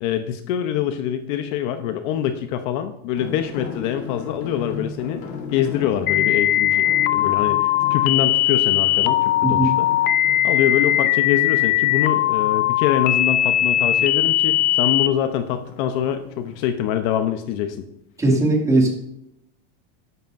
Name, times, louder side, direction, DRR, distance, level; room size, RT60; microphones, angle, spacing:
voice 1, 0.0-5.2 5.5-9.9 10.4-17.8, left 10 dB, 50° left, 8 dB, 0.8 m, -25 dB
sound 1, 3.1-16.7, left 5 dB, 85° left, 3.4 m, -37 dB
sound 2, 6.1-15.1, left 13 dB, 30° left, 0.5 m, -19 dB
voice 2, 18.2-18.9, right 2 dB, 10° right, 0 dB, 2.2 m, -18 dB
13.0 x 11.5 x 2.6 m, 0.78 s
supercardioid pair, 155°, 32 cm